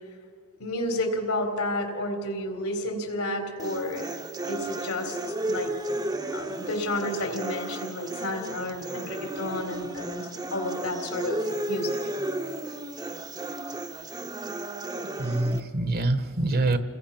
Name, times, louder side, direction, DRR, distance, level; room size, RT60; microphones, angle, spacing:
voice 1, 0.6-4.1 4.4-5.8 6.3-12.0, left 1 dB, 75° left, 4 dB, 3.9 m, -31 dB
sound 1, 3.6-15.6, right 2 dB, 20° right, 0.9 m, -34 dB
voice 2, 15.0-16.8, right 2 dB, 45° right, 10 dB, 1.2 m, -25 dB
30.0 x 21.0 x 5.9 m, 2.2 s
head